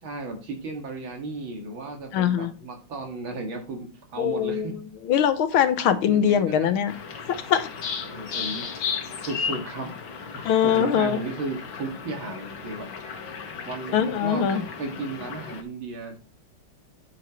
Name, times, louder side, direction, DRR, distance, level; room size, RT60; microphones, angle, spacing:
voice 1, 0.0-4.7 6.1-6.8 8.0-9.9 10.3-12.9 13.7-16.2, right 3 dB, 75° right, 2.8 m, -35 dB
voice 2, 2.1-2.5 4.2-4.8 5.0-6.9 7.5-7.7 10.5-11.2 13.9-14.6, left 9 dB, 90° left, 1.8 m, -22 dB
sound 1, 6.9-15.6, left 6 dB, 75° left, 2.1 m, -35 dB
8.4 x 7.7 x 3.0 m
omnidirectional pair, 2.2 m